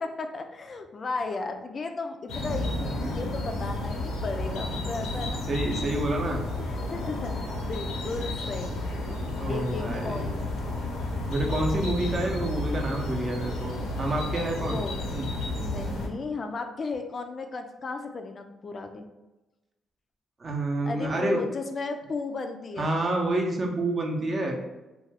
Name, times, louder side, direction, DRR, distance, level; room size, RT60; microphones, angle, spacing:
voice 1, 0.0-5.4 6.6-10.4 14.5-15.1 15.5-19.1 20.9-22.9, left 3 dB, 45° left, 5 dB, 0.3 m, -35 dB
sound 1, 2.3-16.1, left 2 dB, 90° left, 0.6 m, -31 dB
voice 2, 5.5-6.4 9.4-10.2 11.3-14.8 15.1-15.3 20.4-21.4 22.8-24.6, right 2 dB, 40° right, 1 dB, 0.6 m, -28 dB
2.4 x 2.3 x 3.3 m, 1.0 s
supercardioid pair, 65°, 0 cm